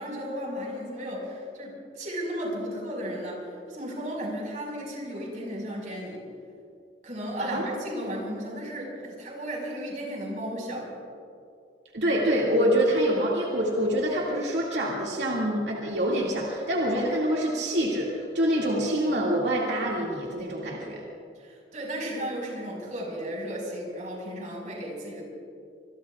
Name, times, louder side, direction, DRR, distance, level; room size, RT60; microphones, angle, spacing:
voice 1, 0.0-6.2 7.0-10.9 21.3-25.3, equal, 45° right, -1 dB, 5.0 m, -34 dB
voice 2, 11.9-21.0, equal, 80° right, -4 dB, 2.2 m, -26 dB
26.0 x 22.0 x 2.4 m, 2.4 s
head